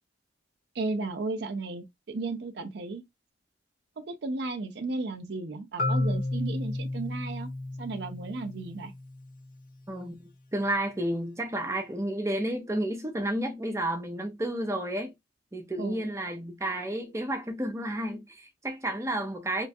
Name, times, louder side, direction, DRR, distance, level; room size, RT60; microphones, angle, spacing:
voice 1, 0.7-3.0 4.0-7.5 7.8-8.9 15.8-16.0, right 3 dB, 60° right, 0.5 m, -34 dB
Marimba xylophone, 5.8-9.7, left 2 dB, 45° left, 0.5 m, -32 dB
voice 2, 9.9-15.1 15.5-19.7, right 1 dB, 15° right, 0.6 m, -31 dB
2.9 x 2.3 x 2.6 m
head